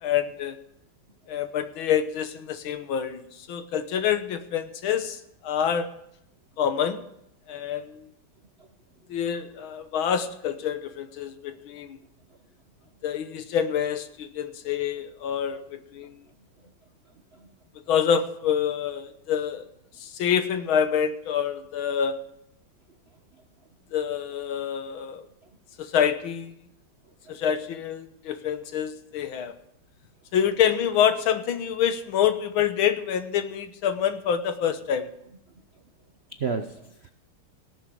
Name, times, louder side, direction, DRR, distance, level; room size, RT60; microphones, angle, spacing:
voice 1, 0.0-0.6 1.3-3.2 3.5-5.9 6.6-7.0 7.5-8.0 9.1-12.0 13.0-16.1 17.9-19.6 20.0-22.2 23.9-25.2 25.8-26.5 27.3-29.5 30.3-35.1, left 8 dB, 75° left, 10 dB, 1.8 m, -26 dB
voice 2, 36.4-37.1, right 5 dB, 60° right, 7 dB, 0.6 m, -32 dB
18.0 x 7.2 x 7.8 m, 0.78 s
omnidirectional pair, 2.3 m